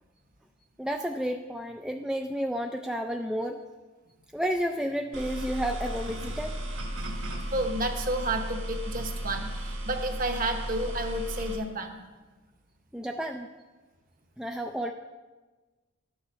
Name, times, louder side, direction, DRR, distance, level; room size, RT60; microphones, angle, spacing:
voice 1, 0.8-3.6 4.3-6.6 12.9-13.5 14.4-14.9, equal, 5° right, 3 dB, 0.3 m, -31 dB
sound 1, 5.1-11.6, right 1 dB, 60° right, 1.7 m, -35 dB
voice 2, 7.5-12.0, right 1 dB, 40° right, 5 dB, 1.0 m, -31 dB
12.0 x 7.0 x 6.3 m, 1.3 s
head